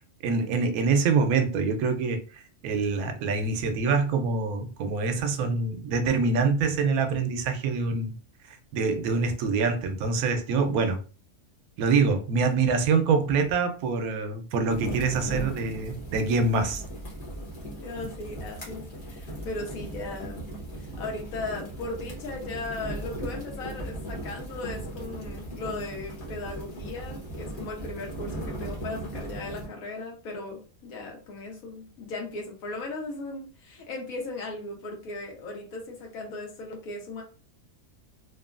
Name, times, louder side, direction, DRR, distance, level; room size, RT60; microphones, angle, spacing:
voice 1, 0.2-8.1 8.7-11.0 11.8-16.8, right 4 dB, 90° right, 1.0 m, -25 dB
sound 1, 14.7-29.7, right 1 dB, 30° left, 0.9 m, -38 dB
voice 2, 17.8-20.5 21.0-37.2, left 2 dB, 80° left, 1.2 m, -37 dB
3.0 x 2.2 x 2.4 m
omnidirectional pair, 1.5 m